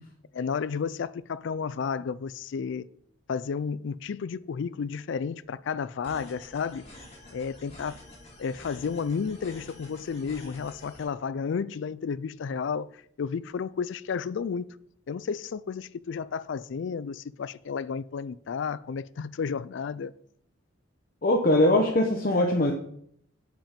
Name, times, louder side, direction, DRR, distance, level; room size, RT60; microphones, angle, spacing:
voice 1, 0.3-2.9 3.3-6.8 7.3-8.0 8.4-12.9 13.2-14.7 15.1-20.1, left 6 dB, 60° left, 0.3 m, -32 dB
sound 1, 6.0-11.0, left 1 dB, 30° left, 2.9 m, -48 dB
voice 2, 21.2-22.7, left 1 dB, 45° left, 0.9 m, -21 dB
8.8 x 5.2 x 5.2 m
head